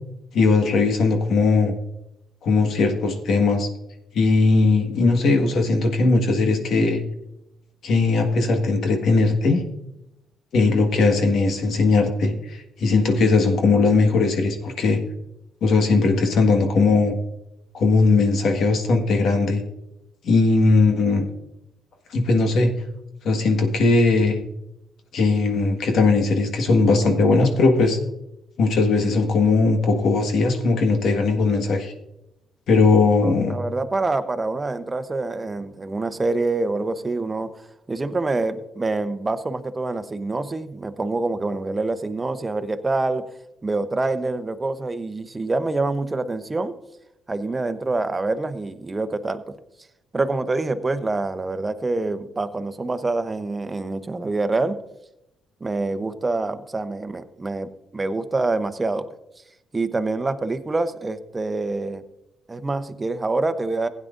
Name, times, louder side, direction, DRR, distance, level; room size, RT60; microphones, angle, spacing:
voice 1, 0.3-1.7 2.4-3.7 4.1-7.0 7.8-9.6 10.5-15.0 15.6-17.2 17.7-19.6 20.2-21.3 22.1-22.7 23.2-24.4 25.1-28.0 28.6-31.9 32.7-33.6, left 3 dB, 70° left, 5 dB, 1.6 m, -19 dB
voice 2, 33.2-37.5 37.9-43.3 43.6-46.7 47.3-49.4 50.1-54.8 55.6-59.1 59.7-62.0 62.5-63.9, right 3 dB, 20° right, 9 dB, 0.8 m, -26 dB
16.0 x 9.4 x 2.6 m, 0.85 s
cardioid pair, 90°, 0 cm